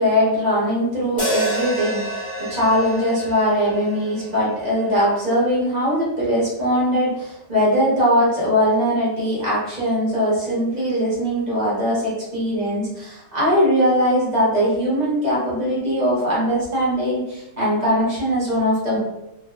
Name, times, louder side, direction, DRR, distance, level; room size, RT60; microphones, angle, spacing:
voice 1, 0.0-19.0, equal, 40° right, -7 dB, 0.6 m, -21 dB
sound 1, 1.2-5.5, right 1 dB, 50° left, 0.3 m, -29 dB
2.6 x 2.4 x 2.3 m, 0.92 s
omnidirectional pair, 1.8 m